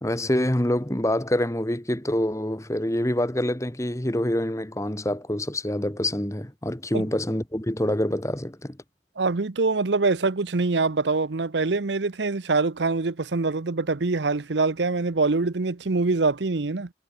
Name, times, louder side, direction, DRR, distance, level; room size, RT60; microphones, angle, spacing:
voice 1, 0.0-8.8, left 1 dB, 15° left, 1.7 m, -26 dB
voice 2, 9.2-16.9, right 3 dB, 75° right, 0.8 m, -24 dB
head